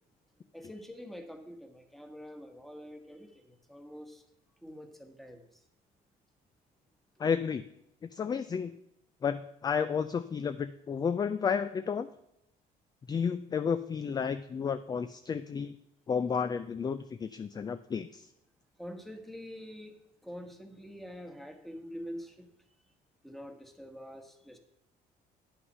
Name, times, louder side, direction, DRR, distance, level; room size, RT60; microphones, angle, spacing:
voice 1, 0.5-4.2 4.6-5.4 18.8-19.9 20.2-22.5 23.2-24.6, equal, ahead, 6 dB, 1.2 m, -45 dB
voice 2, 7.2-7.6 8.1-8.7 9.2-12.1 13.1-15.8 16.1-18.3, left 6 dB, 25° left, 11 dB, 0.3 m, -32 dB
9.5 x 5.8 x 5.4 m, 0.80 s
cardioid pair, 110°, 17 cm